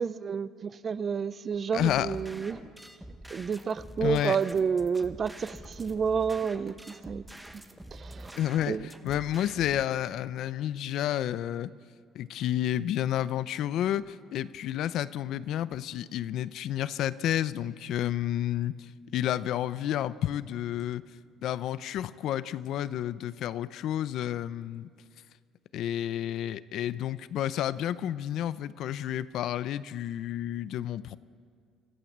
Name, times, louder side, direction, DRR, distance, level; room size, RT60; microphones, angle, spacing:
voice 1, 0.0-2.6 3.3-7.2 7.5-7.6 7.9-8.4 8.7-8.9, right 6 dB, 25° right, 17 dB, 0.4 m, -30 dB
voice 2, 1.7-2.2 4.0-4.4 8.4-11.7 12.1-21.0 21.4-24.9 25.7-31.2, left 11 dB, 55° left, 16 dB, 0.6 m, -30 dB
sound 1, 1.7-9.8, right 1 dB, 5° right, 0.9 m, -46 dB
26.0 x 15.5 x 7.3 m, 2.1 s
cardioid pair, 165°, 0 cm